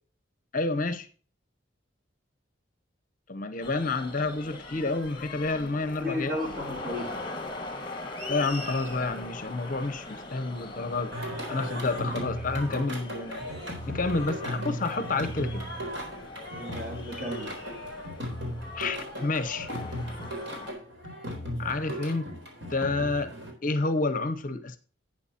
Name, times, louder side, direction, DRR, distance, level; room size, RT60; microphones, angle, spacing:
voice 1, 0.5-1.1 3.3-6.4 8.3-11.1 11.5-13.5 13.9-15.6 18.7-19.7 21.6-22.3 22.7-23.3 23.6-24.8, left 3 dB, 40° left, 0.7 m, -29 dB
sound 1, 3.6-20.7, left 2 dB, 25° left, 1.7 m, -41 dB
voice 2, 6.0-7.2 12.1-12.2 16.5-17.5, left 1 dB, 45° right, 3.3 m, -34 dB
Singing, 11.1-23.5, equal, 70° right, 3.8 m, -36 dB
11.5 x 8.8 x 2.8 m
head